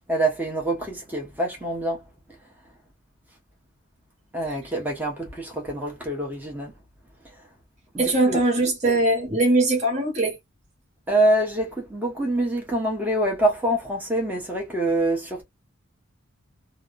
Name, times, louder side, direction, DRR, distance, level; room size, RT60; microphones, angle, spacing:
voice 1, 0.1-2.0 4.3-6.7 7.9-8.4 11.1-15.4, right 1 dB, 10° right, 0.9 m, -25 dB
voice 2, 8.0-10.4, right 2 dB, 35° right, 1.2 m, -21 dB
3.0 x 2.0 x 2.3 m
head